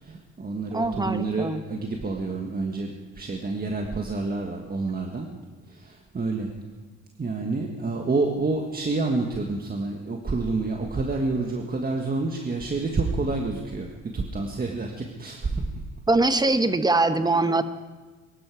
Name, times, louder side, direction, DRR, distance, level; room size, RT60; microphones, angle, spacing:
voice 1, 0.0-5.3 5.7-6.5 7.2-15.7, right 3 dB, 30° right, 2 dB, 1.6 m, -28 dB
voice 2, 0.7-1.6 16.1-17.6, right 2 dB, 15° right, 11 dB, 0.9 m, -22 dB
22.5 x 12.0 x 4.9 m, 1.3 s
cardioid pair, 90°, 30 cm